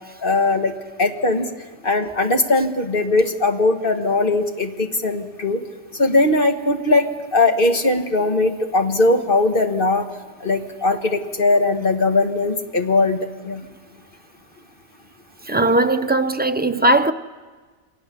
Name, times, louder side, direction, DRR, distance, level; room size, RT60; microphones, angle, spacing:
voice 1, 0.2-0.7 1.0-1.5 1.8-5.6 6.0-10.1 10.4-13.2 13.4-13.6, left 2 dB, 40° left, 1.8 m, -19 dB
voice 2, 15.5-17.1, right 1 dB, 15° right, 0.4 m, -18 dB
28.5 x 23.0 x 6.9 m
omnidirectional pair, 1.4 m